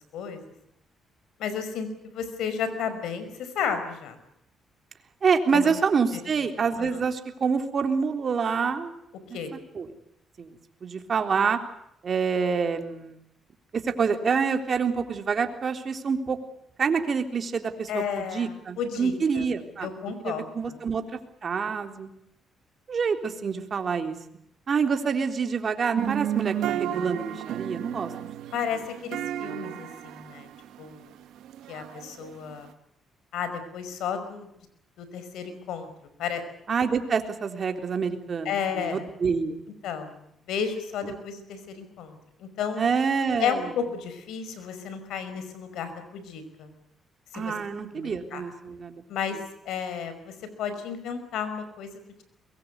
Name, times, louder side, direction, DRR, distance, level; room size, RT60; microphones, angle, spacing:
voice 1, 1.4-1.9 2.1-4.2 5.5-5.7 6.1-6.5 6.8-7.0 9.3-9.5 17.9-19.5 19.8-20.8 28.5-30.5 30.8-31.1 31.7-32.7 33.3-34.5 35.0-35.9 36.2-36.4 38.5-39.0 39.8-40.2 40.5-42.8 43.4-46.7 47.3-47.5 47.9-48.4 49.1-49.4 49.7-52.2, left 7 dB, 85° left, 11 dB, 5.3 m, -32 dB
voice 2, 5.2-8.9 9.3-9.4 9.7-9.9 10.4-10.5 10.8-11.6 12.0-13.2 13.7-16.4 16.8-19.9 20.2-21.0 21.4-22.1 22.9-24.2 24.7-28.1 36.7-39.6 41.0-41.2 42.8-43.7 47.3-49.0, right 5 dB, 45° right, 6 dB, 3.6 m, -27 dB
sound 1, 26.0-32.7, right 11 dB, 85° right, 1.6 m, -33 dB
23.5 x 22.5 x 8.2 m, 0.76 s
cardioid pair, 90°, 0 cm